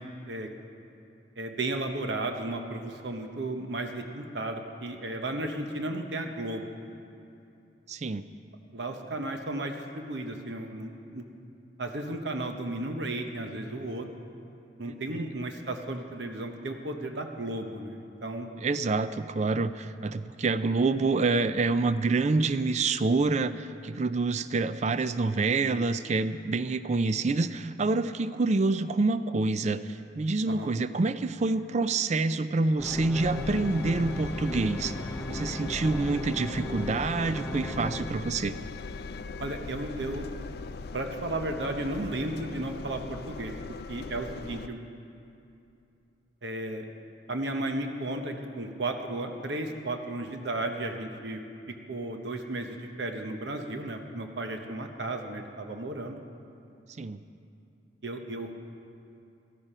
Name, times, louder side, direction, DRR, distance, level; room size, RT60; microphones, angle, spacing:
voice 1, 1.4-6.7 8.7-11.2 11.8-14.1 14.8-18.5 25.7-25.8 30.5-30.7 39.4-40.3 40.9-43.5 43.9-44.8 46.4-46.9 47.3-51.4 51.9-56.2 58.0-58.5, right 2 dB, 70° right, 4 dB, 1.0 m, -34 dB
voice 2, 7.9-8.2 14.8-15.3 18.6-35.0 35.3-38.5 57.0-57.2, right 3 dB, 40° right, 13 dB, 0.4 m, -27 dB
sound 1, 32.8-38.0, left 1 dB, 10° left, 0.6 m, -37 dB
Engine, 33.1-44.7, left 4 dB, 60° left, 0.4 m, -40 dB
14.0 x 13.5 x 5.6 m, 2.7 s
head